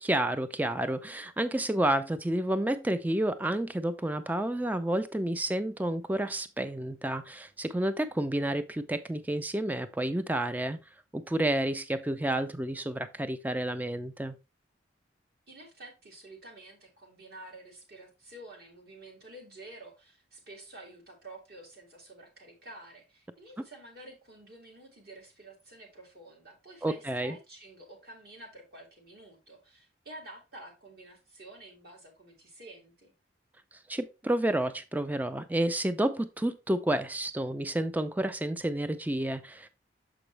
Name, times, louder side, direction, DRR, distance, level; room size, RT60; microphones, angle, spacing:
voice 1, 0.0-10.8 11.1-14.3 26.8-27.4 33.9-39.7, right 1 dB, 10° right, 0.3 m, -30 dB
voice 2, 15.5-33.1, right 2 dB, 50° right, 2.1 m, -50 dB
6.9 x 5.0 x 3.2 m
head